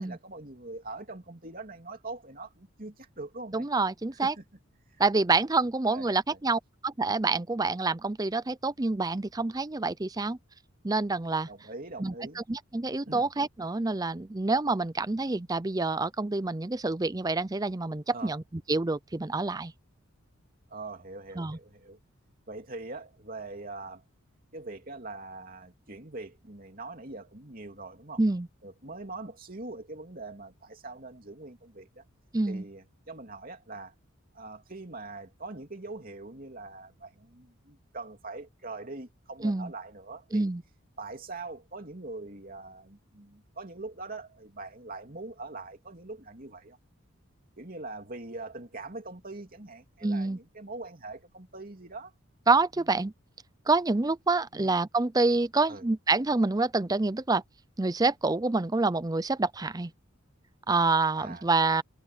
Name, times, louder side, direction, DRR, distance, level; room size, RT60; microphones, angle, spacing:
voice 1, 0.0-3.7 4.1-4.4 5.8-6.4 11.5-12.4 13.1-13.3 18.1-18.3 20.7-22.0 22.5-24.0 24.5-28.2 28.6-32.0 32.5-33.9 34.3-40.5 41.0-46.8 47.6-52.1 52.8-52.9 54.5-54.7 55.7-55.9 61.2-61.5, right 2 dB, 40° right, 3.1 m, -42 dB
voice 2, 3.5-4.3 5.0-10.4 10.8-11.5 12.0-18.4 18.7-19.7 21.4-21.6 28.2-28.5 32.3-32.7 39.4-39.7 40.3-40.6 50.0-50.4 52.5-53.1 53.7-57.4 57.8-59.9 60.7-61.8, right 3 dB, 15° right, 0.5 m, -27 dB
head